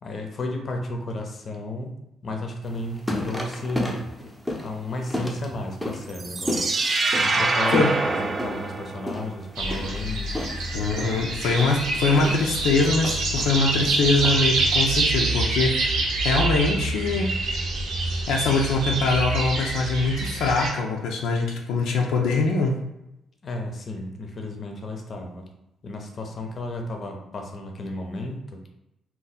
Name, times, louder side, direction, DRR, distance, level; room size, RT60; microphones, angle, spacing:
voice 1, 0.0-1.9 2.2-4.0 4.6-6.7 7.2-10.3 23.4-25.5 25.8-28.6, left 1 dB, 45° left, 3 dB, 0.6 m, -33 dB
sound 1, 2.6-14.9, left 1 dB, 5° left, 0.7 m, -33 dB
sound 2, 6.1-9.2, right 3 dB, 35° right, 0.4 m, -25 dB
sound 3, 9.5-20.7, right 2 dB, 85° right, 0.8 m, -26 dB
voice 2, 10.7-17.3 18.3-22.7, left 3 dB, 85° left, 0 dB, 0.5 m, -23 dB
2.7 x 2.2 x 4.0 m, 0.87 s
cardioid pair, 90°, 0 cm